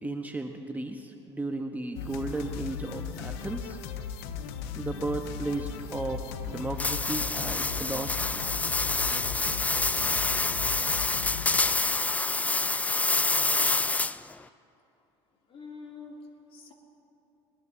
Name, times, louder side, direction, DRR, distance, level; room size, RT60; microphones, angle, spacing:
voice 1, 0.0-3.8 4.7-8.4, right 2 dB, 10° right, 4 dB, 1.0 m, -34 dB
sound 1, 2.0-11.6, left 7 dB, 70° left, 1.0 m, -37 dB
sound 2, 6.8-14.3, left 3 dB, 10° left, 0.4 m, -27 dB
voice 2, 15.5-16.2 16.5-16.7, left 4 dB, 45° left, 0 dB, 2.8 m, -47 dB
21.0 x 21.0 x 2.8 m, 2.7 s
hypercardioid pair, 80°, 14 cm